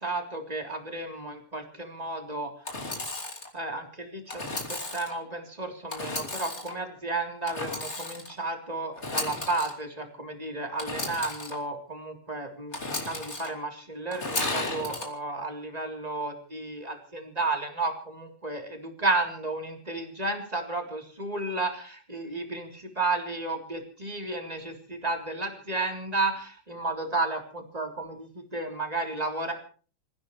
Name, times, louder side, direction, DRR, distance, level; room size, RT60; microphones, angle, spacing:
voice 1, 0.0-2.5 3.5-4.4 4.7-29.5, right 2 dB, 10° right, 3 dB, 3.3 m, -32 dB
Engine / Sawing, 2.6-3.5 4.3-5.1 5.9-6.7 7.5-8.3 8.9-9.7 10.8-11.5 12.7-13.5 14.1-15.1, left 2 dB, 20° left, 3.0 m, -34 dB
28.0 x 16.0 x 3.2 m, 0.39 s
omnidirectional pair, 3.6 m